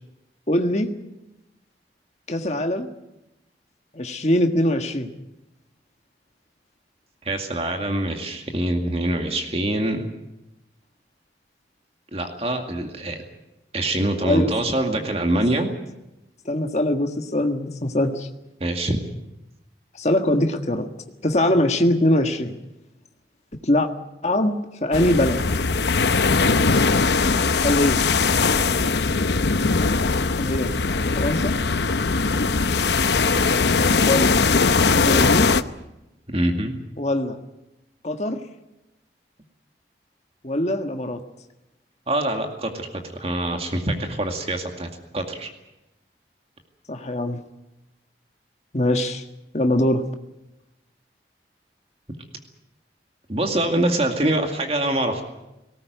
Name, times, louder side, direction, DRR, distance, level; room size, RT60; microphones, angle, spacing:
voice 1, 0.5-0.9 2.3-2.9 3.9-5.1 14.2-14.5 16.4-18.3 19.9-20.9 21.2-22.6 23.6-23.9 24.2-25.4 27.6-28.1 30.4-30.7 31.1-31.6 34.0-34.4 34.9-35.5 37.0-37.4 38.0-38.4 40.4-41.2 46.9-47.4 48.7-49.2 49.5-50.1, left 1 dB, 40° left, 5 dB, 1.6 m, -22 dB
voice 2, 7.2-10.1 12.1-13.2 13.7-15.7 18.6-19.0 36.3-36.8 42.1-45.5 53.3-55.2, right 1 dB, 35° right, 4 dB, 2.2 m, -24 dB
sound 1, 24.9-35.6, left 4 dB, 75° left, 0.8 m, -20 dB
19.0 x 18.5 x 9.3 m, 0.94 s
head